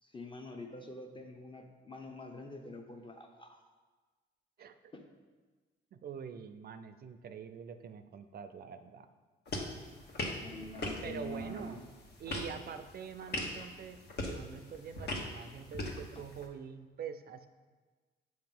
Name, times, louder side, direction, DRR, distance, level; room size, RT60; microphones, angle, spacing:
voice 1, 0.0-3.7 4.9-5.0 10.4-11.9 16.1-16.2, left 2 dB, 25° left, 3 dB, 0.7 m, -46 dB
voice 2, 5.9-9.1 11.0-11.9 12.2-17.5, right 7 dB, 50° right, 10 dB, 0.5 m, -45 dB
sound 1, 9.5-16.5, left 1 dB, 55° left, 1.2 m, -41 dB
7.5 x 2.9 x 5.4 m, 1.4 s
cardioid pair, 90°, 20 cm